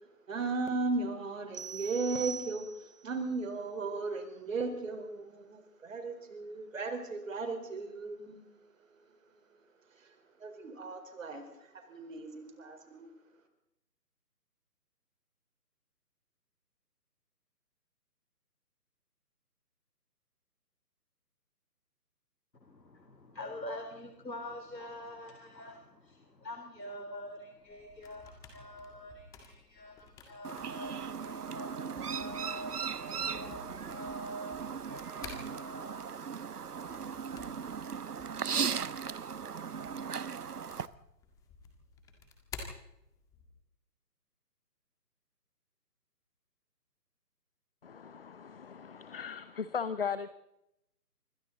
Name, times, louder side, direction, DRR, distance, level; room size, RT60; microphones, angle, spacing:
voice 1, 0.3-8.4 8.8-8.9 9.9-10.1 10.4-13.1, right 3 dB, 50° right, 5 dB, 4.4 m, -36 dB
sound 1, 1.5-3.1, right 6 dB, 35° right, 0.9 m, -42 dB
voice 2, 22.6-36.2, equal, 85° left, 4 dB, 3.7 m, -45 dB
sound 2, 27.6-43.6, left 4 dB, 5° left, 1.8 m, -53 dB
Chirp tweet, 30.4-40.9, right 6 dB, 65° right, 1.2 m, -37 dB
voice 3, 47.8-50.3, left 6 dB, 35° left, 15 dB, 0.8 m, -37 dB
26.0 x 25.5 x 4.0 m, 0.86 s
figure-of-eight pair, 150°, 49 cm